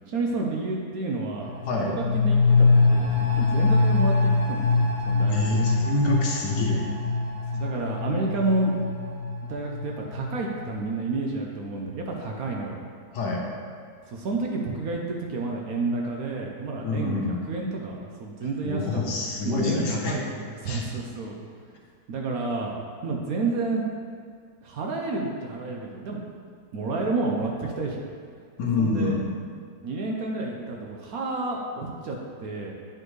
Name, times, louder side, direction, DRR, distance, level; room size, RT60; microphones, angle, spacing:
voice 1, 0.1-1.5 1.8-5.7 7.5-8.7 9.5-12.8 14.1-19.0 19.4-21.4 22.1-22.7 23.0-23.8 24.6-26.2 26.7-28.1 28.8-29.2 29.8-32.7, right 3 dB, 65° right, -1 dB, 1.0 m, -30 dB
sound 1, 1.4-10.8 11.1-11.2, left 3 dB, 50° left, 0.4 m, -23 dB
voice 2, 5.3-6.8 13.1-13.4 16.8-17.4 18.6-20.2 20.7-20.8 28.6-29.3, left 3 dB, 70° left, -1 dB, 1.4 m, -26 dB
8.8 x 4.5 x 3.1 m, 2.1 s
omnidirectional pair, 1.9 m